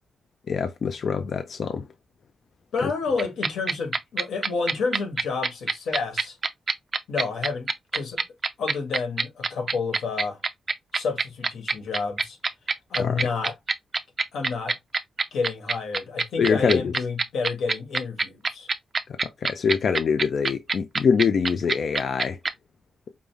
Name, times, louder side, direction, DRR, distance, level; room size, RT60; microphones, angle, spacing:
voice 1, 0.5-1.9 2.8-2.9 13.0-13.2 16.4-16.9 19.1-22.4, left 6 dB, 50° left, 0.4 m, -24 dB
voice 2, 2.7-6.4 7.1-8.2 8.6-10.4 10.9-12.4 12.9-13.5 14.3-14.8 15.3-18.7, left 4 dB, 90° left, 1.5 m, -30 dB
sound 1, 3.2-22.5, right 4 dB, 30° right, 0.4 m, -24 dB
5.2 x 2.1 x 3.3 m
wide cardioid pair, 165°, 0 cm